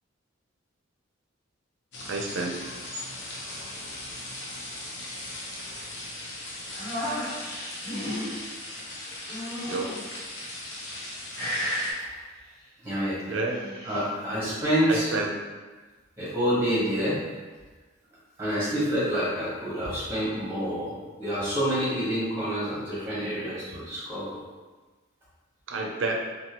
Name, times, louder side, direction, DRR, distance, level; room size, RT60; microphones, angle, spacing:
sound 1, 1.9-11.9, left 1 dB, 55° left, 0.6 m, -39 dB
voice 1, 2.0-2.6 9.7-10.1 13.3-13.6 14.9-15.3 25.7-26.1, right 3 dB, 65° right, 1 dB, 0.4 m, -29 dB
sound 2, 6.7-8.5 9.3-10.1 10.8-11.1 11.3-12.0 13.3-14.0, equal, 90° left, 1.2 m, -33 dB
voice 2, 12.8-13.2 13.8-15.1 16.2-17.2 18.4-24.4, equal, 10° right, -9 dB, 0.9 m, -27 dB
2.8 x 2.3 x 2.9 m, 1.3 s
head